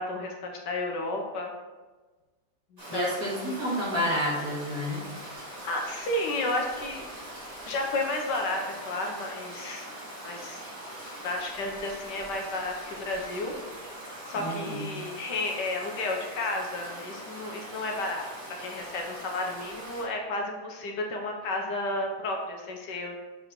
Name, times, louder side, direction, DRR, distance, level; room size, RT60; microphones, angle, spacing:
voice 1, 0.0-1.5 2.7-3.1 5.4-7.0 7.7-9.9 10.2-10.6 11.2-13.5 14.3-18.3 18.6-23.2, left 2 dB, 65° left, 1 dB, 1.4 m, -32 dB
Stream, 2.8-20.0, right 1 dB, 20° right, 2.3 m, -42 dB
voice 2, 2.9-5.0 14.4-14.8, equal, 50° right, -6 dB, 2.2 m, -29 dB
7.2 x 3.9 x 4.5 m, 1.3 s
omnidirectional pair, 2.1 m